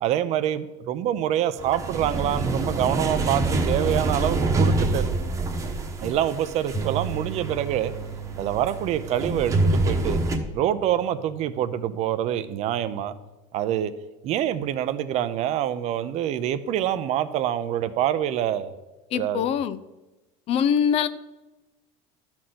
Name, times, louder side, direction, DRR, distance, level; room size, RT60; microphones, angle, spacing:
voice 1, 0.0-5.1 6.0-7.9 8.4-10.2 10.5-13.1 13.5-13.9 14.2-18.7 19.1-19.6, right 11 dB, 45° right, 12 dB, 0.7 m, -26 dB
sound 1, 1.6-10.4, right 2 dB, 20° right, 1.2 m, -26 dB
sound 2, 6.7-13.0, right 7 dB, 15° left, 1.6 m, -38 dB
voice 2, 19.1-19.8 20.5-21.1, left 8 dB, 40° left, 15 dB, 0.5 m, -23 dB
12.5 x 4.4 x 7.7 m, 1.1 s
cardioid pair, 155°, 16 cm